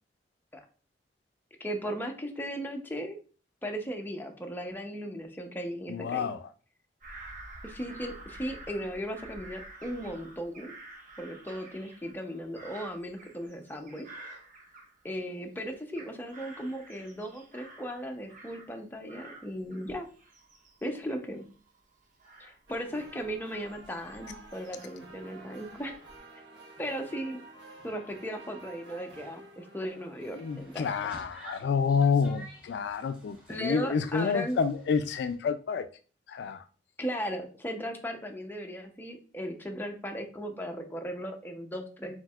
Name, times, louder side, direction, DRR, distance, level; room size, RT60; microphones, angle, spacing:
voice 1, 1.6-3.2 3.6-6.3 7.6-10.7 11.2-14.1 15.0-20.1 20.8-21.5 22.4-26.0 26.8-27.4 27.8-30.4 30.7-30.9 33.5-34.6 37.0-42.2, equal, 10° left, 0.6 m, -37 dB
voice 2, 5.9-6.5 30.4-35.9 36.3-36.6, left 5 dB, 65° left, 0.3 m, -29 dB
Bird vocalization bird call bird song / Crow, 7.0-15.3 15.7-18.8 19.1-25.1 25.6-26.2, right 2 dB, 45° right, 1.2 m, -50 dB
sound 1, 22.7-30.8, right 2 dB, 70° right, 1.1 m, -50 dB
sound 2, 30.5-35.3, right 1 dB, 10° right, 1.9 m, -52 dB
4.5 x 4.1 x 2.3 m
head